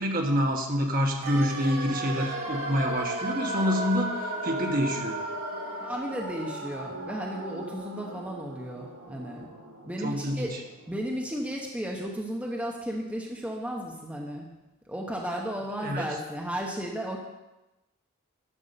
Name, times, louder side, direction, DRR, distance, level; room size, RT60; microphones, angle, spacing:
voice 1, 0.0-5.2 10.0-10.6 15.8-16.1, equal, 40° right, 2 dB, 1.3 m, -27 dB
sound 1, 1.2-11.1 11.4-11.5, right 2 dB, 90° right, 2.2 m, -35 dB
voice 2, 5.6-9.5 9.8-10.5 10.9-14.5 14.9-17.2, equal, 5° right, -1 dB, 1.0 m, -34 dB
11.0 x 5.9 x 6.7 m, 0.99 s
head